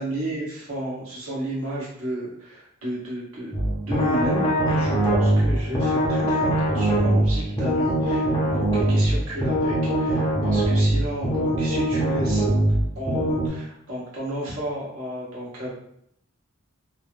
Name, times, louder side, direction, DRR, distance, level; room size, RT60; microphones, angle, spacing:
voice 1, 0.0-3.5 3.9-12.6 12.9-15.7, right 1 dB, 80° right, -7 dB, 1.2 m, -32 dB
sound 1, 3.5-13.5, right 1 dB, 25° left, 0.6 m, -22 dB
3.2 x 2.1 x 2.6 m, 0.73 s
head